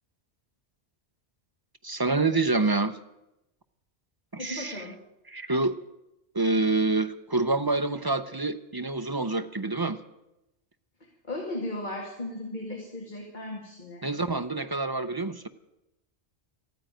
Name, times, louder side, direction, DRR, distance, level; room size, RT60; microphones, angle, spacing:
voice 1, 1.8-3.0 4.3-4.8 5.3-5.8 6.3-10.0 14.0-15.5, right 3 dB, 25° right, 9 dB, 0.5 m, -27 dB
voice 2, 4.4-5.0 11.3-14.1, left 1 dB, 45° left, -1 dB, 2.4 m, -36 dB
14.5 x 9.3 x 9.1 m, 0.90 s
omnidirectional pair, 1.1 m